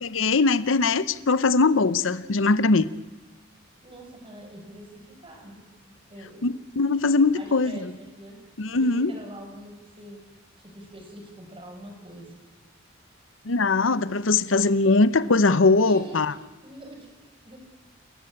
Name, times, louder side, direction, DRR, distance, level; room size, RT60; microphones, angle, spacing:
voice 1, 0.0-2.9 6.4-7.9 8.6-9.1 13.5-16.3, left 3 dB, 80° left, 15 dB, 0.8 m, -21 dB
voice 2, 3.8-6.5 7.3-8.4 8.7-10.2 10.6-12.3 15.8-17.6, right 1 dB, 30° right, 2 dB, 6.9 m, -45 dB
29.5 x 14.0 x 8.8 m, 1.2 s
head